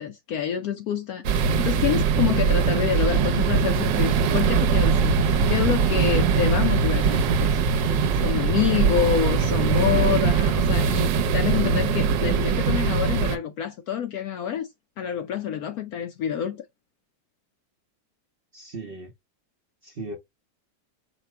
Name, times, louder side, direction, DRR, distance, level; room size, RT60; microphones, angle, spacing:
voice 1, 0.0-7.9 8.2-14.7 15.0-16.7, left 9 dB, 70° left, 0.9 m, -27 dB
sound 1, 1.2-13.4, right 5 dB, 85° right, 1.4 m, -21 dB
voice 2, 18.5-19.1 19.8-20.2, right 2 dB, 45° right, 0.8 m, -37 dB
5.0 x 2.1 x 4.4 m
omnidirectional pair, 2.0 m